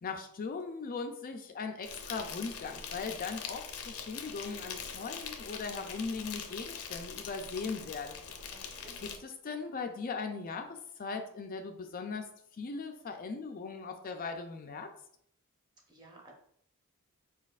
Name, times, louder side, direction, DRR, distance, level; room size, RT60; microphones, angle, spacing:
voice 1, 0.0-8.2 9.0-14.9, left 4 dB, 40° left, 5 dB, 0.4 m, -39 dB
Insect, 1.8-9.2, left 6 dB, 75° left, 0.6 m, -43 dB
voice 2, 8.5-9.0 15.9-16.3, right 2 dB, 20° right, 0 dB, 0.9 m, -55 dB
4.6 x 4.0 x 2.4 m, 0.67 s
head